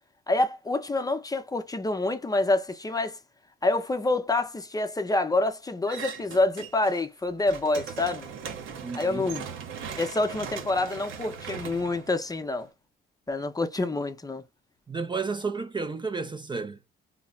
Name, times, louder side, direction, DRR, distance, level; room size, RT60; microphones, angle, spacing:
voice 1, 0.3-3.2 3.6-8.3 8.9-9.5 10.0-12.7 13.3-14.4, left 2 dB, 20° left, 0.6 m, -27 dB
sound 1, 5.9-7.0 7.3-12.7, right 7 dB, 80° right, 0.9 m, -39 dB
voice 2, 8.8-9.3 14.9-16.8, right 4 dB, 25° right, 0.5 m, -32 dB
3.1 x 2.1 x 2.4 m
cardioid pair, 90°, 20 cm